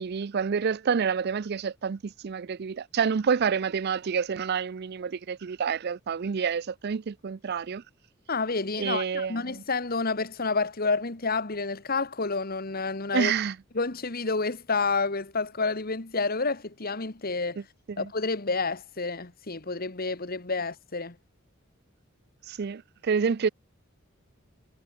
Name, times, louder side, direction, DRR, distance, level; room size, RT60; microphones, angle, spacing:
voice 1, 0.0-7.8 8.8-9.6 13.1-13.5 17.6-17.7 17.9-18.1 22.5-23.5, right 6 dB, 50° right, 0.4 m, -28 dB
voice 2, 8.3-13.3 13.7-17.6 18.0-21.1, left 4 dB, 45° left, 1.8 m, -29 dB
head